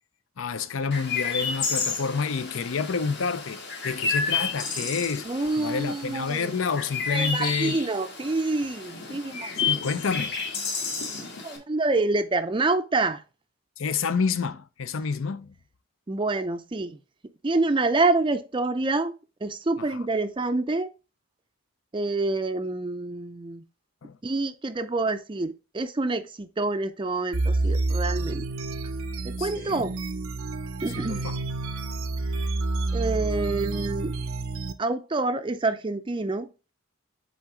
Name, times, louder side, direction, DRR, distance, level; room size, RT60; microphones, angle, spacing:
voice 1, 0.4-5.3 5.6-7.8 9.6-10.8 13.8-15.5 19.8-19.9 24.0-24.2 29.4-29.8 31.1-31.4, left 5 dB, 70° left, 0.5 m, -29 dB
Chirp tweet, 0.9-11.6, left 5 dB, 50° left, 1.7 m, -31 dB
voice 2, 5.2-6.5 7.1-9.8 11.4-13.2 16.1-17.0 17.4-19.1 19.4-20.9 21.9-23.6 24.2-28.5 29.2-30.0 30.8-31.3 32.9-34.1 34.8-36.5, right 3 dB, 25° right, 0.4 m, -27 dB
sound 1, 27.3-34.7, right 2 dB, 85° right, 0.6 m, -29 dB
7.3 x 4.0 x 3.7 m
head